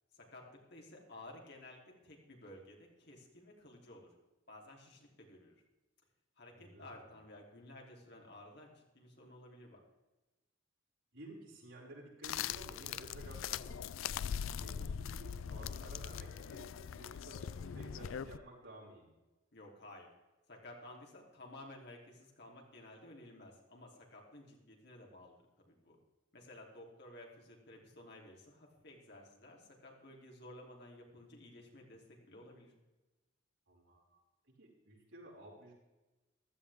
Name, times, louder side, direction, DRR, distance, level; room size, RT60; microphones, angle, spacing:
voice 1, 0.1-1.8 2.0-4.1 4.5-5.6 6.4-9.8 19.5-20.1 20.5-26.0 26.3-32.7, left 1 dB, 55° left, -1 dB, 3.3 m, -54 dB
voice 2, 6.5-7.1 11.1-13.8 14.4-19.1 33.7-34.2 34.6-35.7, right 1 dB, 75° right, -5 dB, 5.8 m, -54 dB
sound 1, 12.2-18.4, left 8 dB, 85° left, 0.4 m, -41 dB
15.5 x 13.0 x 3.6 m, 1.1 s
head